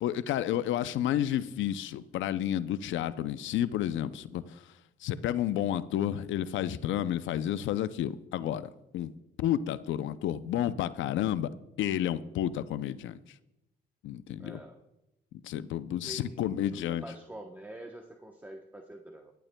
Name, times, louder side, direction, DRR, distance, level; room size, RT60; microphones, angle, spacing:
voice 1, 0.0-4.6 5.0-9.1 9.4-11.5 11.8-13.2 14.0-14.6 15.4-17.0, left 11 dB, 75° left, 14 dB, 0.5 m, -31 dB
voice 2, 14.4-14.8 16.0-19.3, right 1 dB, 10° right, 2 dB, 0.9 m, -46 dB
17.5 x 11.5 x 2.2 m, 0.90 s
cardioid pair, 90°, 20 cm